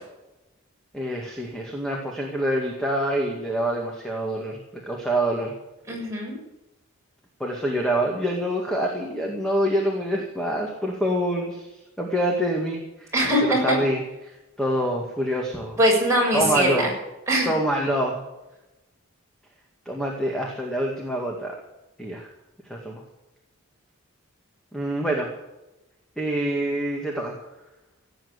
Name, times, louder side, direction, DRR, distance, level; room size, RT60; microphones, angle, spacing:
voice 1, 0.9-5.5 7.4-11.7 12.0-13.1 13.4-15.8 16.3-16.9 17.4-18.2 19.9-21.5 22.0-22.3 22.7-23.0 24.7-25.3 26.2-27.4, right 1 dB, ahead, -1 dB, 2.1 m, -26 dB
voice 2, 5.9-6.3 13.1-13.8 15.8-16.9 17.3-17.5, right 1 dB, 15° right, -4 dB, 7.1 m, -21 dB
17.0 x 9.0 x 8.1 m, 0.97 s
head